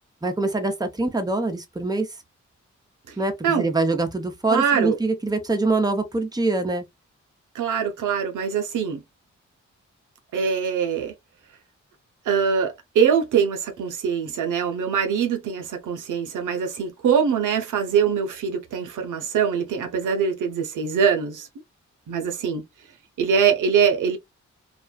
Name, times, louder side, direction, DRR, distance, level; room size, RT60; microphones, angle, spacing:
voice 1, 0.2-2.1 3.2-6.8, right 2 dB, 15° right, 0.8 m, -24 dB
voice 2, 4.5-5.0 7.5-9.0 10.3-11.1 12.3-21.5 22.1-22.6 23.2-24.2, right 7 dB, 85° right, 0.6 m, -23 dB
2.4 x 2.3 x 2.3 m
supercardioid pair, 45°, 30 cm